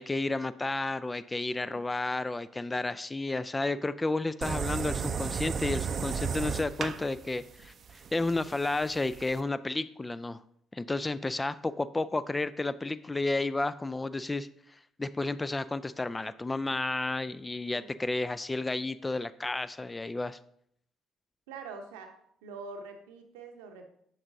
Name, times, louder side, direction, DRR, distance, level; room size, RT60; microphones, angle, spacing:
voice 1, 0.0-10.4 10.7-14.5 15.0-20.4, left 2 dB, 20° left, 14 dB, 0.3 m, -32 dB
sound 1, 4.4-9.4, right 6 dB, 45° right, 0.5 m, -34 dB
voice 2, 21.5-22.1 22.4-23.8, right 4 dB, 70° right, 5 dB, 0.8 m, -45 dB
7.3 x 6.8 x 2.7 m, 0.69 s
figure-of-eight pair, 45°, 0 cm